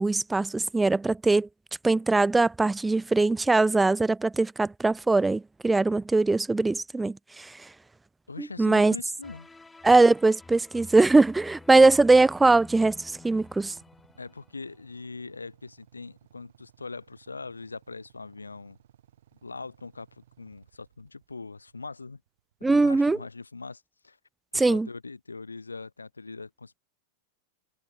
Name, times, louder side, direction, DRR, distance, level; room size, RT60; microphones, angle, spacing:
voice 1, 0.0-1.5 1.8-7.5 8.4-8.9 9.8-13.0 13.2-13.7 22.6-23.2 24.6-24.9, right 3 dB, 10° right, 0.3 m, -21 dB
voice 2, 8.3-9.5 14.2-18.8 19.3-22.2 22.6-24.2 24.5-26.8, left 4 dB, 80° left, 3.2 m, -41 dB
sound 1, 9.2-15.0, left 3 dB, 10° left, 4.6 m, -50 dB
Motorcycle / Idling, 13.0-22.7, right 11 dB, 60° right, 4.9 m, -61 dB
figure-of-eight pair, 90°, 0 cm